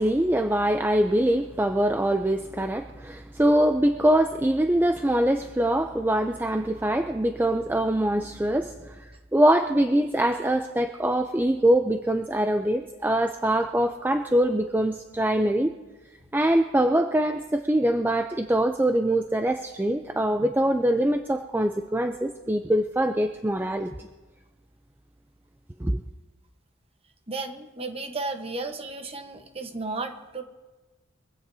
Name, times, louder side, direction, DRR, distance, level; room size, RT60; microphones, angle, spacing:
voice 1, 0.0-9.0 9.3-15.7 16.3-24.1 25.8-26.0, right 1 dB, 10° right, 6 dB, 0.4 m, -23 dB
voice 2, 27.3-30.4, right 3 dB, 30° right, 6 dB, 1.1 m, -34 dB
23.5 x 16.0 x 2.7 m, 1.2 s
head